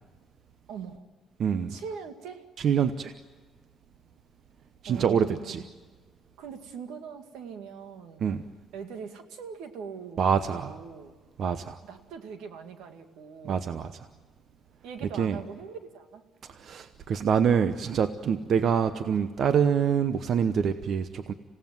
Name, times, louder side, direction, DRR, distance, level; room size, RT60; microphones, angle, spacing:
voice 1, 0.7-1.0 1.7-2.5 4.9-5.7 6.4-8.2 8.7-10.4 10.6-11.1 11.8-13.6 14.8-16.2 18.3-18.5, right 6 dB, 90° right, 7 dB, 2.1 m, -42 dB
voice 2, 1.4-1.7 2.6-3.1 4.8-5.6 8.2-8.4 10.2-10.8 11.4-11.8 13.4-14.1 15.2-15.4 16.5-21.3, right 7 dB, 60° right, 10 dB, 0.9 m, -26 dB
26.5 x 17.0 x 9.4 m, 1.4 s
cardioid pair, 105°, 0 cm